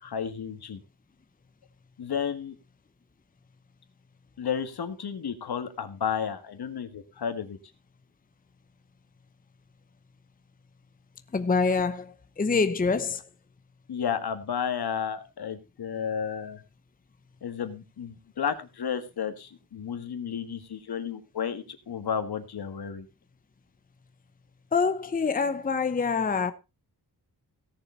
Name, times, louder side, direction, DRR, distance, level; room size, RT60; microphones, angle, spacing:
voice 1, 0.0-0.8 2.0-2.6 4.4-7.6 13.9-16.6 17.4-23.1, left 7 dB, 75° left, 1.8 m, -32 dB
voice 2, 11.3-13.2 24.7-26.5, left 4 dB, 20° left, 0.7 m, -25 dB
17.0 x 7.0 x 4.3 m
wide cardioid pair, 155°, 38 cm